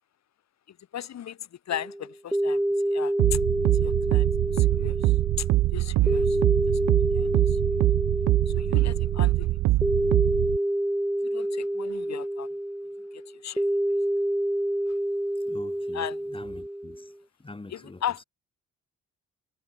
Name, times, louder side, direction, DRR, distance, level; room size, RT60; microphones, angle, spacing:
voice 1, 0.7-3.4 3.8-5.5 5.7-6.4 7.1-7.8 8.5-9.6 11.2-12.5 13.1-14.0 14.9-15.0 15.9-16.2 17.7-18.2, left 10 dB, 60° left, 2.3 m, -37 dB
sound 1, 1.7-17.1, right 1 dB, 5° right, 1.1 m, -28 dB
sound 2, 3.2-10.6, right 18 dB, 80° right, 0.6 m, -23 dB
voice 2, 15.4-17.1 17.4-18.2, left 2 dB, 15° left, 3.9 m, -45 dB
cardioid pair, 90°, 30 cm